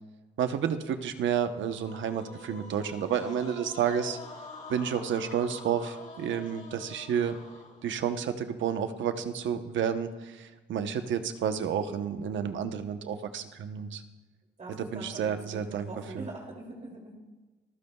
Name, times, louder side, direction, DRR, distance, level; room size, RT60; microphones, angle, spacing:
voice 1, 0.4-4.2 4.7-7.4 7.8-14.0 14.8-15.9 16.1-16.2, right 8 dB, 70° right, 8 dB, 1.0 m, -30 dB
sound 1, 1.6-8.0, left 3 dB, 40° left, 5.0 m, -46 dB
voice 2, 14.6-17.2, right 2 dB, 35° right, -2 dB, 2.8 m, -43 dB
26.5 x 15.0 x 2.4 m, 1.2 s
cardioid pair, 90°, 20 cm